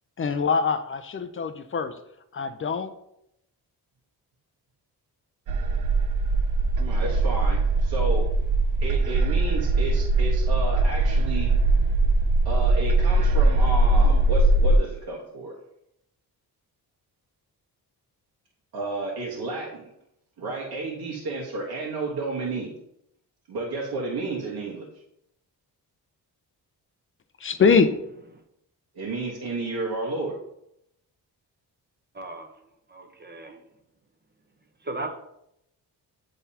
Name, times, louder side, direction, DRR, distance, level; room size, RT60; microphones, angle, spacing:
voice 1, 0.2-1.9 2.3-2.9 27.4-27.9, left 5 dB, 30° left, 9 dB, 0.5 m, -23 dB
sound 1, 5.5-14.8, right 2 dB, 50° right, 0.6 m, -21 dB
voice 2, 6.8-8.2 8.8-11.5 12.4-15.5 18.7-19.9 20.4-22.7 23.5-24.9 28.9-30.3, right 2 dB, 70° right, -4 dB, 1.4 m, -31 dB
voice 3, 32.2-32.5 32.9-33.6 34.9-35.2, right 2 dB, 25° right, 5 dB, 0.9 m, -35 dB
8.6 x 3.9 x 2.8 m, 0.79 s
cardioid pair, 80°, 40 cm